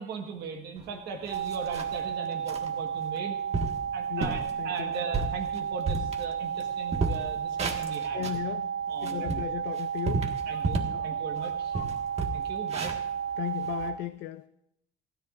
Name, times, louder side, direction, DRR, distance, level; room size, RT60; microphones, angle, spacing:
voice 1, 0.0-3.4 3.9-8.3 8.9-9.4 10.5-11.8 12.3-12.9, right 5 dB, 75° right, 1.5 m, -38 dB
sound 1, 0.8-0.9 1.3-2.0 2.5-2.7 3.2-3.3 3.5-3.8 4.2-4.5 4.9-6.6 6.9-8.4 8.9-11.0 11.4-11.5 11.7-13.9, right 3 dB, 40° right, 1.6 m, -32 dB
sound 2, 1.3-14.0, right 7 dB, 55° right, 0.7 m, -33 dB
voice 2, 4.1-4.9 8.1-8.7 9.0-10.6 10.9-12.4 13.4-14.5, left 17 dB, 85° left, 0.5 m, -37 dB
29.5 x 10.5 x 2.5 m
cardioid pair, 110°, 17 cm